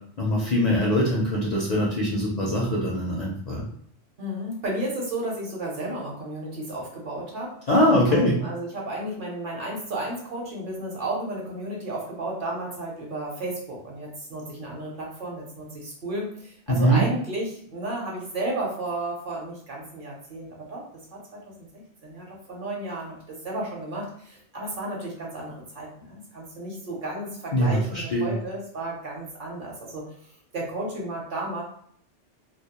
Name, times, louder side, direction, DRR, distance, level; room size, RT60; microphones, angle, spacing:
voice 1, 0.2-3.7 7.7-8.4 16.7-17.0 27.5-28.3, equal, 55° left, -4 dB, 0.4 m, -22 dB
voice 2, 4.2-7.5 8.1-20.8 21.1-30.0 30.5-31.6, right 1 dB, 55° right, -3 dB, 0.7 m, -33 dB
2.2 x 2.0 x 2.8 m, 0.64 s
omnidirectional pair, 1.2 m